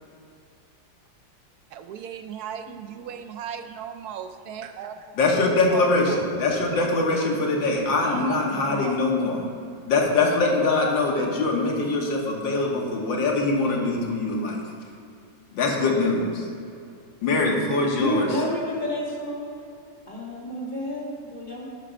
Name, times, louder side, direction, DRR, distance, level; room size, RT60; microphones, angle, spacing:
voice 1, 1.7-5.2 5.7-6.2 7.7-9.1, right 8 dB, 75° right, 7 dB, 0.9 m, -37 dB
voice 2, 5.2-9.4 9.9-14.6 15.5-16.5 17.2-18.3, left 3 dB, 80° left, -1 dB, 2.0 m, -23 dB
voice 3, 18.0-19.6 20.1-21.7, left 1 dB, 25° left, -5 dB, 1.7 m, -30 dB
9.8 x 5.8 x 5.1 m, 2.5 s
omnidirectional pair, 2.0 m